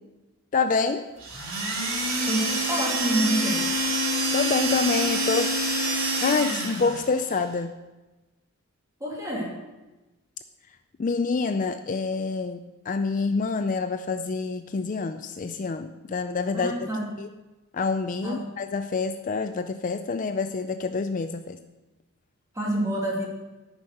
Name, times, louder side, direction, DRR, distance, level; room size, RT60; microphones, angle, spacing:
voice 1, 0.5-1.0 4.3-5.6 6.2-7.7 11.0-16.9 17.2-17.3 17.7-21.6, left 4 dB, 35° left, 8 dB, 0.4 m, -27 dB
sound 1, 1.2-7.1, right 1 dB, 65° right, 3.3 m, -26 dB
voice 2, 2.3-3.6 9.0-9.5 16.5-17.1 18.2-18.4 22.5-23.3, equal, 15° right, -3 dB, 2.6 m, -27 dB
10.5 x 5.5 x 7.9 m, 1.1 s
head